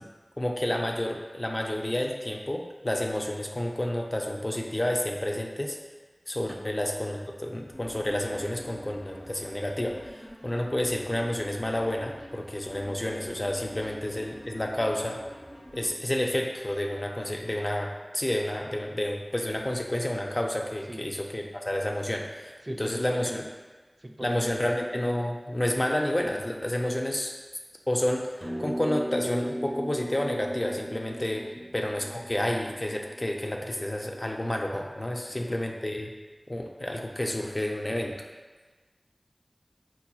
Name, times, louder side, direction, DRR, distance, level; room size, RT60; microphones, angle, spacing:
voice 1, 0.4-5.8 6.3-15.2 15.7-23.4 24.2-27.3 27.9-31.5 31.7-36.1 36.5-38.1, left 1 dB, 40° left, 1 dB, 0.4 m, -30 dB
sound 1, 7.7-15.9, equal, 65° left, 0.9 m, -47 dB
voice 2, 22.6-23.4 24.0-24.5 31.6-31.8 35.3-35.6, right 1 dB, 45° right, 2 dB, 0.3 m, -40 dB
sound 2, 28.4-32.9, equal, 15° left, 0.8 m, -36 dB
4.5 x 2.8 x 2.3 m, 1.3 s
wide cardioid pair, 45°, 0 cm